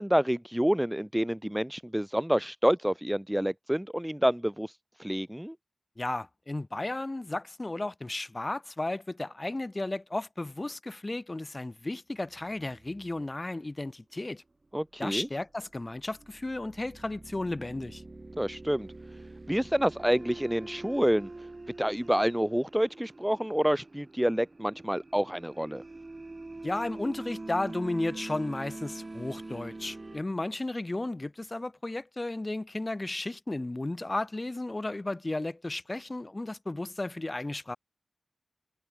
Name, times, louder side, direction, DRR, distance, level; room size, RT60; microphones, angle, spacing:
voice 1, 0.0-5.6 14.7-15.3 18.4-18.9 19.5-21.5 21.8-25.8, equal, 5° right, 0.6 m, -28 dB
voice 2, 6.0-14.4 15.0-18.0 26.6-37.8, left 2 dB, 25° left, 3.2 m, -34 dB
sound 1, 12.4-13.2 15.6-30.2, right 2 dB, 30° right, 2.3 m, -44 dB
wide cardioid pair, 115°, 0 cm